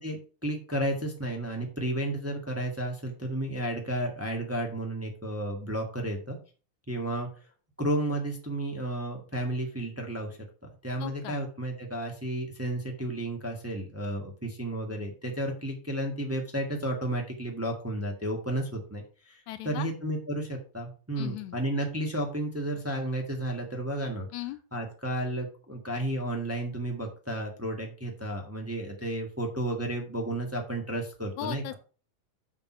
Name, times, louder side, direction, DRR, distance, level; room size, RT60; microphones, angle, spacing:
voice 1, 0.0-6.4 6.9-7.3 7.8-10.4 10.8-24.3 24.7-31.6, right 1 dB, 10° right, 1 dB, 0.7 m, -32 dB
voice 2, 11.0-11.5 19.5-19.9 21.2-21.6 24.3-24.6 31.4-31.8, left 14 dB, 80° left, 11 dB, 1.9 m, -37 dB
6.6 x 5.9 x 5.9 m, 0.37 s
omnidirectional pair, 3.5 m